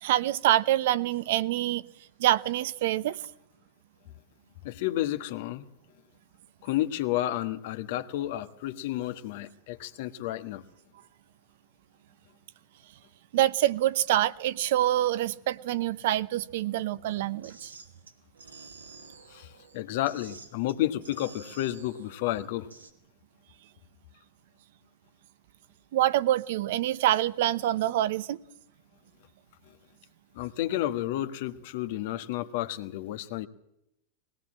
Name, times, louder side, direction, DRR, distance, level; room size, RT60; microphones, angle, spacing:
voice 1, 0.0-1.8 2.2-3.2 13.3-17.7 25.9-28.4, right 13 dB, 65° right, 17 dB, 0.9 m, -26 dB
voice 2, 4.6-5.7 6.6-10.6 19.3-19.5 19.7-22.7 30.3-33.5, left 14 dB, 60° left, 11 dB, 1.4 m, -31 dB
sound 1, 17.1-22.9, right 4 dB, 90° right, 2.4 m, -51 dB
20.5 x 18.0 x 7.6 m, 0.81 s
hypercardioid pair, 95°, 0 cm